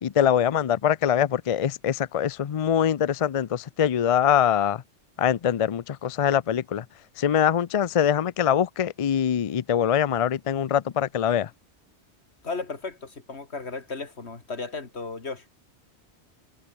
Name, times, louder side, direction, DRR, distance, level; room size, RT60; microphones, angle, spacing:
voice 1, 0.0-4.8 5.2-6.8 7.2-11.5, left 9 dB, 50° left, 0.4 m, -23 dB
voice 2, 12.4-15.4, left 4 dB, 70° left, 2.7 m, -35 dB
omnidirectional pair, 1.2 m